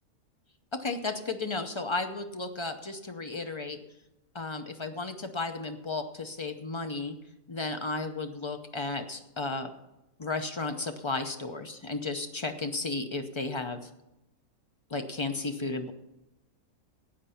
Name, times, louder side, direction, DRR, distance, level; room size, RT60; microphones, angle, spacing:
voice 1, 0.7-3.8 4.3-7.2 7.5-9.7 10.2-13.9 14.9-15.9, left 3 dB, 50° left, 7 dB, 0.3 m, -34 dB
12.5 x 8.8 x 5.7 m, 0.91 s
omnidirectional pair, 1.6 m